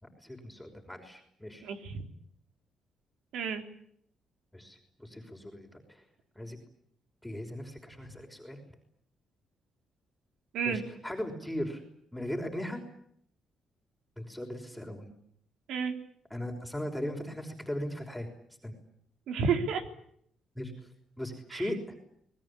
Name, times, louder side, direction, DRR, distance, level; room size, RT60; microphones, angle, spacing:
voice 1, 0.0-1.6 4.5-6.0 6.4-6.6 7.2-8.6 10.6-11.8 12.1-12.8 14.2-15.1 16.3-18.3 18.6-18.7 20.6-20.7 21.2-21.8, left 1 dB, 5° left, 2 dB, 5.7 m, -38 dB
voice 2, 1.6-2.0 3.3-3.6 10.5-10.8 15.7-15.9 19.3-19.9 21.5-21.7, right 6 dB, 80° right, 6 dB, 3.8 m, -31 dB
28.0 x 21.0 x 8.7 m, 0.69 s
cardioid pair, 90°, 0 cm